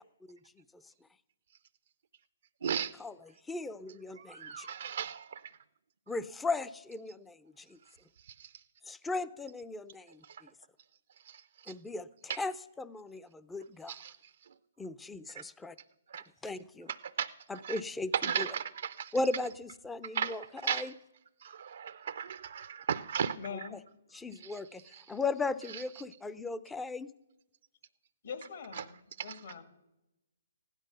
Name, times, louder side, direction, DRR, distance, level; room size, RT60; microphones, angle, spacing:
voice 1, 2.6-3.0 4.2-5.6 8.2-8.6 10.2-10.4 11.2-11.7 12.3-12.4 13.9-14.5 15.3-15.4 16.1-16.2 16.9-17.3 17.6-17.8 18.1-19.1 20.1-20.9 21.4-23.7 24.4-25.2 25.7-25.8 28.7-28.9 29.2-29.4, right 7 dB, 70° right, 0.5 m, -37 dB
voice 2, 3.5-4.7 6.1-7.8 8.8-10.5 11.7-12.1 12.3-12.5 12.8-13.9 14.8-15.8 16.4-16.9 17.5-18.5 19.1-20.9 23.5-23.6 24.1-27.1, left 3 dB, 5° left, 0.5 m, -37 dB
voice 3, 23.4-23.8 28.2-29.6, left 6 dB, 65° left, 2.4 m, -43 dB
16.0 x 11.5 x 5.7 m
hypercardioid pair, 145°, 0 cm